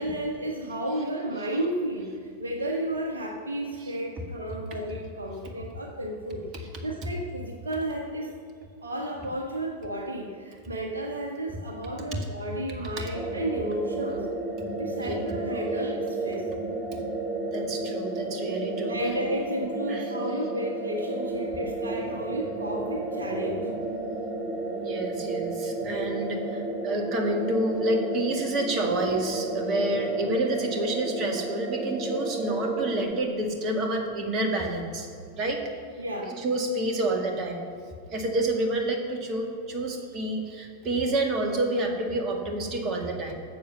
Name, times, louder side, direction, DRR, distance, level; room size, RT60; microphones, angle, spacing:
voice 1, 0.0-8.3 8.8-14.3 14.8-16.5 18.9-23.7 25.8-25.9 36.0-36.4, right 1 dB, 75° right, 1 dB, 1.5 m, -32 dB
sound 1, 13.1-33.1, right 2 dB, 15° right, 2.4 m, -32 dB
voice 2, 17.5-18.9 19.9-20.0 24.7-35.1 35.4-35.6 36.4-37.6 38.1-43.3, right 1 dB, 35° right, 3 dB, 2.0 m, -28 dB
13.0 x 7.3 x 6.9 m, 2.2 s
figure-of-eight pair, 90°, 0 cm